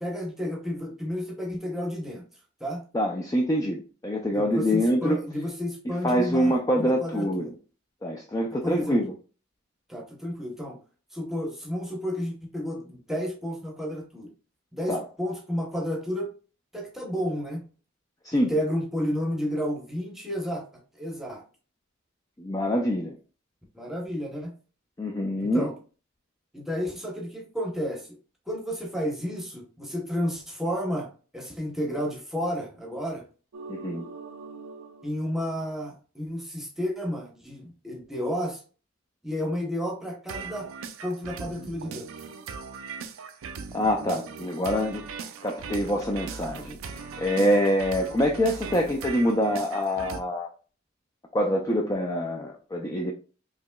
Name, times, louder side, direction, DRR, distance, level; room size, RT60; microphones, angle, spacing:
voice 1, 0.0-2.2 2.6-2.8 4.3-7.5 8.5-9.0 9.9-10.8 11.1-14.3 14.7-16.3 16.7-17.6 18.3-20.6 21.0-21.4 23.7-24.5 25.4-25.8 26.5-28.1 28.5-33.2 35.0-38.6 39.2-40.7 41.0-42.1, equal, ahead, 0 dB, 0.8 m, -31 dB
voice 2, 2.9-5.2 6.0-7.5 8.0-9.1 14.9-15.0 18.2-18.5 22.4-23.1 25.0-25.7 33.7-34.0 43.7-45.0 45.4-50.5 51.3-53.1, equal, 15° left, 1 dB, 0.3 m, -25 dB
sound 1, 33.5-35.2 40.3-50.2, right 5 dB, 75° right, 0.4 m, -39 dB
4.8 x 2.9 x 2.2 m, 0.37 s
head